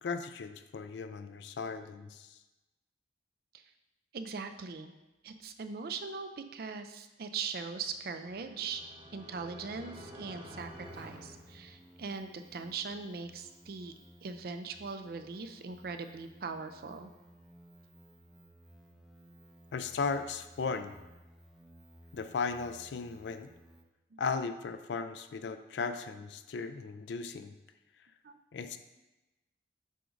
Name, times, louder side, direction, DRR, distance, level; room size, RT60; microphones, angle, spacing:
voice 1, 0.0-2.4 19.7-21.0 22.1-23.5 24.2-27.5 28.5-28.8, left 5 dB, 70° left, 10 dB, 0.4 m, -36 dB
voice 2, 4.1-4.9 5.2-8.8 9.1-13.9 14.2-17.1 24.1-24.2 28.2-28.4 28.6-28.8, right 5 dB, 55° right, 8 dB, 0.4 m, -40 dB
sound 1, 7.8-12.2, equal, 30° right, 1.0 m, -50 dB
sound 2, 10.6-23.8, right 1 dB, ahead, 0.5 m, -57 dB
7.6 x 2.5 x 5.1 m, 1.0 s
head